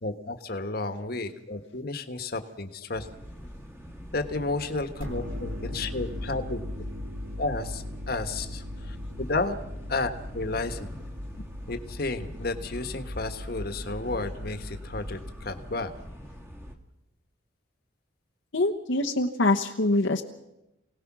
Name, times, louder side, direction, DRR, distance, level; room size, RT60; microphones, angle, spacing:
voice 1, 0.0-3.1 4.1-6.6 7.4-9.5 9.9-10.9 11.7-15.9, left 3 dB, 50° left, 8 dB, 1.5 m, -32 dB
sound 1, 2.9-16.7, equal, 15° right, 1.9 m, -45 dB
sound 2, 5.0-16.0, left 1 dB, 90° right, 2.3 m, -39 dB
voice 2, 18.5-20.2, left 2 dB, 70° left, 2 dB, 1.1 m, -24 dB
28.0 x 18.5 x 6.2 m, 0.93 s
head